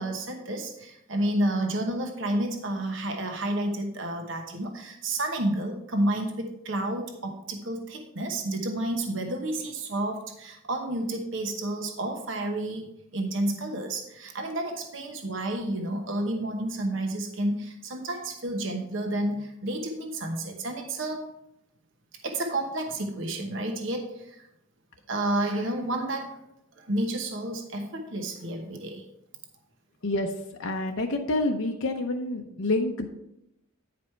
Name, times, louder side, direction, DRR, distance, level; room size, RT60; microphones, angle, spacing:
voice 1, 0.0-21.3 22.2-24.5 25.1-26.4 26.8-29.0, right 1 dB, 65° right, 3 dB, 1.1 m, -30 dB
voice 2, 30.6-33.1, left 2 dB, 75° left, 2 dB, 0.7 m, -27 dB
9.5 x 5.1 x 4.5 m, 0.82 s
head